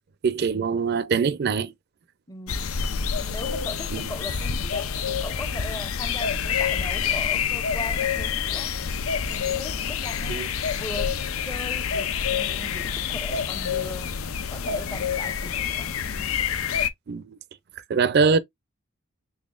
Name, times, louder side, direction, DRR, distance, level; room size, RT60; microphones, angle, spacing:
voice 1, 0.2-1.7 3.9-4.1 10.2-10.5 17.1-17.4 17.9-18.4, right 5 dB, 50° right, 0.4 m, -23 dB
voice 2, 2.3-2.7 3.1-8.8 9.3-14.2 14.5-16.3, left 1 dB, 20° left, 0.6 m, -39 dB
sound 1, 2.5-16.9, left 7 dB, 85° left, 0.5 m, -27 dB
4.0 x 3.5 x 2.4 m
head